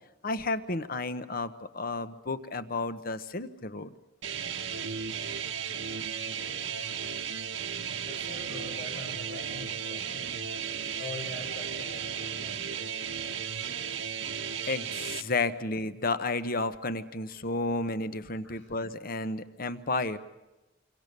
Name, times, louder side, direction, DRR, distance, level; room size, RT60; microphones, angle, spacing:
voice 1, 0.2-3.9 14.7-20.2, left 3 dB, 50° left, 11 dB, 1.1 m, -32 dB
sound 1, 4.2-15.2, right 7 dB, 80° right, 1.5 m, -35 dB
voice 2, 8.0-10.3 11.0-12.9 18.4-18.7, left 2 dB, 75° left, -1 dB, 4.9 m, -44 dB
26.5 x 24.5 x 6.8 m, 1.0 s
head